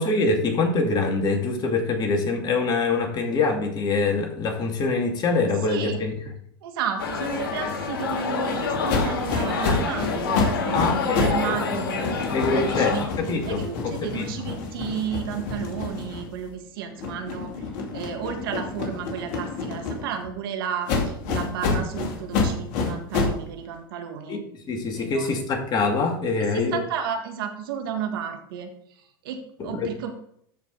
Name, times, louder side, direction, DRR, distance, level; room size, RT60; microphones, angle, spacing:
voice 1, 0.0-6.1 10.7-11.8 12.3-14.4 24.3-24.4 24.7-26.8 29.6-29.9, left 3 dB, 35° left, 3 dB, 2.4 m, -25 dB
voice 2, 5.7-6.0 6.6-12.2 12.6-24.4 25.0-25.3 26.4-30.1, right 7 dB, 75° right, 5 dB, 1.8 m, -33 dB
sound 1, 7.0-13.1, left 5 dB, 85° left, 2.0 m, -27 dB
sound 2, 8.9-11.5 11.8-16.5 17.0-20.3 20.9-23.5, left 4 dB, 60° left, 2.6 m, -28 dB
13.5 x 5.1 x 4.0 m, 0.67 s
hypercardioid pair, 100°, 12 cm